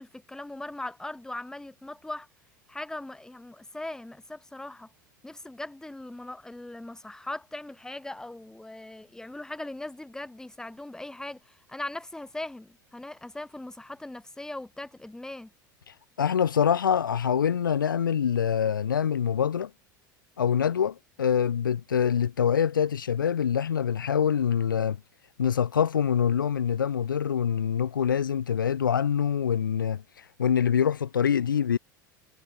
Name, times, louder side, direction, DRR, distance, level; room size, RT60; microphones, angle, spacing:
voice 1, 0.0-2.3 2.7-4.9 5.2-15.5, left 2 dB, 5° left, 1.2 m, -39 dB
voice 2, 16.2-19.7 20.4-25.0 25.4-30.0 30.4-31.8, left 8 dB, 80° left, 0.8 m, -25 dB
figure-of-eight pair, 75°, 11 cm